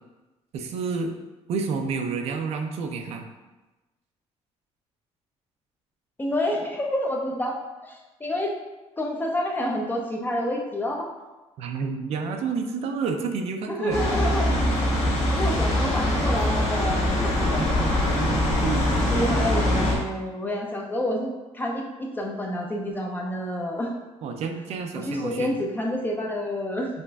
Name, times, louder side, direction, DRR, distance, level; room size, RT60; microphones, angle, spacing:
voice 1, 0.5-1.1 1.5-3.2 11.6-14.0 17.0-19.0 19.3-19.8 24.2-25.6, right 5 dB, 65° right, 5 dB, 0.4 m, -30 dB
voice 2, 6.2-7.5 7.8-8.5 9.0-11.1 13.7-14.5 15.3-17.6 18.8-23.9 25.0-26.9, left 1 dB, 15° left, 0 dB, 0.4 m, -28 dB
sound 1, 13.9-20.0, left 1 dB, 60° left, 1.2 m, -23 dB
5.1 x 2.5 x 2.2 m, 1.1 s
cardioid pair, 120°, 12 cm